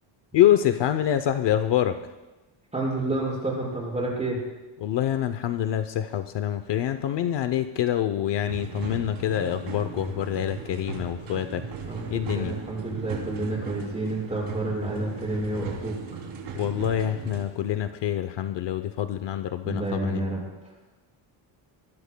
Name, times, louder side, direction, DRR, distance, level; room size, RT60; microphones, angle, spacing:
voice 1, 0.3-2.0 4.8-11.6 12.1-12.5 16.5-20.2, left 11 dB, 60° left, 9 dB, 0.7 m, -26 dB
voice 2, 2.7-4.4 11.9-16.0 19.6-20.7, right 2 dB, 15° right, -6 dB, 5.7 m, -29 dB
sound 1, 8.5-17.4, right 5 dB, 80° right, 3.2 m, -37 dB
26.0 x 20.5 x 2.2 m, 1.1 s
cardioid pair, 170°, 49 cm